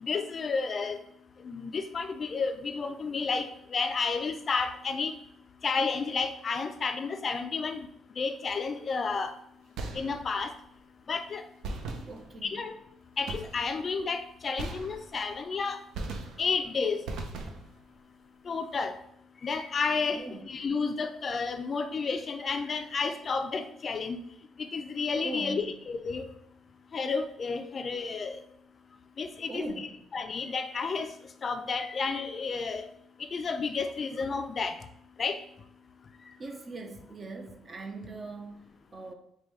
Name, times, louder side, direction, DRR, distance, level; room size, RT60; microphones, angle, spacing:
voice 1, 0.0-1.0 1.4-5.1 5.6-7.9 8.2-9.3 9.9-10.5 11.1-11.4 12.4-12.7 13.2-15.8 16.4-17.0 18.5-18.9 19.4-24.2 24.6-26.2 26.9-28.4 29.2-29.9 30.1-31.1 31.4-32.9 33.3-34.8 35.2-35.4, left 4 dB, 40° left, 0.3 m, -31 dB
sound 1, 9.8-10.5 11.6-12.6 13.3-13.9 14.6-15.4 15.9-16.7 17.1-17.9, right 3 dB, 85° right, 0.5 m, -39 dB
voice 2, 12.1-12.6 20.1-20.5 25.2-25.8 29.5-30.0 36.4-39.1, right 3 dB, 35° right, 0.6 m, -41 dB
4.9 x 2.2 x 3.0 m
cardioid pair, 100°, 0 cm